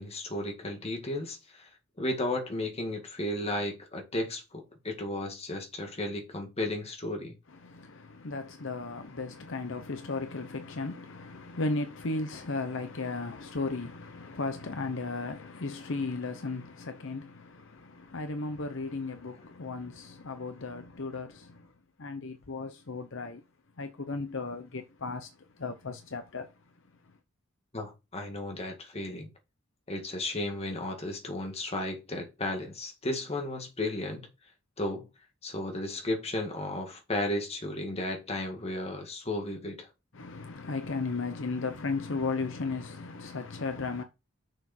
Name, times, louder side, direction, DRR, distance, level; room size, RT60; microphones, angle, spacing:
voice 1, 0.0-1.7 2.0-7.4 27.7-29.3 29.9-34.3 34.8-35.1 35.4-39.9, left 1 dB, 30° left, 1.9 m, -34 dB
voice 2, 7.5-21.7 22.0-23.4 23.8-26.5 27.0-27.1 40.1-44.0, left 3 dB, 65° left, 0.8 m, -35 dB
6.5 x 6.4 x 4.3 m
head